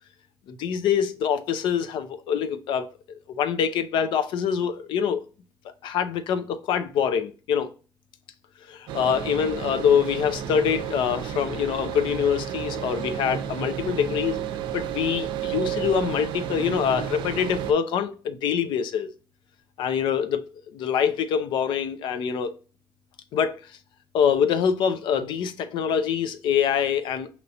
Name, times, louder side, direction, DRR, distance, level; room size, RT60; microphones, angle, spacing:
voice 1, 0.5-2.9 3.3-5.2 5.8-7.7 8.7-14.4 14.7-19.1 19.8-20.5 20.7-22.6 23.3-23.6 24.1-27.3, left 7 dB, 85° left, 0.5 m, -25 dB
sound 1, 8.9-17.7, right 9 dB, 90° right, 0.5 m, -32 dB
5.3 x 2.9 x 2.8 m
cardioid pair, 130°, 8 cm